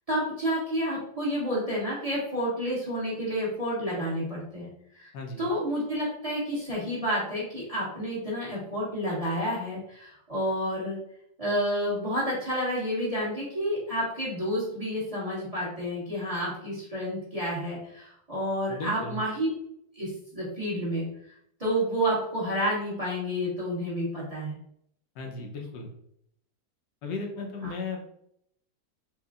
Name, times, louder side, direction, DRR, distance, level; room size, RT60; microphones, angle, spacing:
voice 1, 0.1-5.1 5.4-11.0 11.4-19.5 19.9-21.1 21.6-24.6 27.6-27.7, equal, 25° right, -7 dB, 1.2 m, -30 dB
voice 2, 5.1-5.5 18.7-19.2 25.1-25.9 27.0-28.0, left 3 dB, 85° left, 1 dB, 1.4 m, -36 dB
4.4 x 2.9 x 2.4 m, 0.71 s
omnidirectional pair, 1.8 m